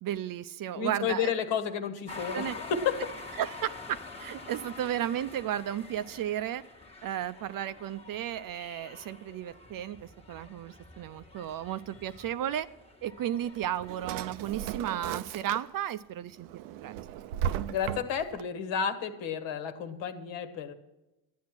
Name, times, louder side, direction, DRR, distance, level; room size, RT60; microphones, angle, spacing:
voice 1, 0.0-1.3 2.3-2.6 3.4-6.6 7.0-12.7 13.0-16.9, right 11 dB, 45° right, 13 dB, 0.6 m, -34 dB
voice 2, 0.7-3.0 17.7-20.7, left 7 dB, 65° left, 7 dB, 1.6 m, -31 dB
sound 1, 2.1-14.9, left 3 dB, 10° left, 1.4 m, -47 dB
Drawer open or close, 13.4-15.9 16.3-18.4, right 10 dB, 85° right, 0.7 m, -36 dB
11.5 x 9.3 x 6.0 m, 1.0 s
supercardioid pair, 90°, 47 cm